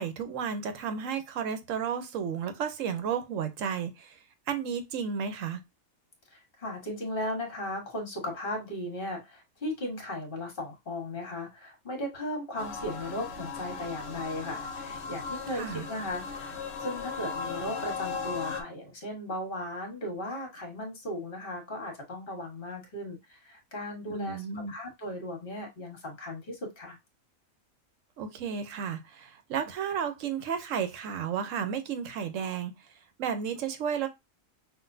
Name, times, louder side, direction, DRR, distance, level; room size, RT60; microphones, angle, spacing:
voice 1, 0.0-4.1 4.5-5.6 15.6-15.9 24.1-24.7 28.2-32.7 33.2-34.1, right 7 dB, 70° right, 1.1 m, -32 dB
voice 2, 6.3-27.0, left 1 dB, 40° left, 1.5 m, -37 dB
sound 1, 12.6-18.6, left 5 dB, 60° left, 1.0 m, -37 dB
5.8 x 2.5 x 2.6 m
omnidirectional pair, 1.4 m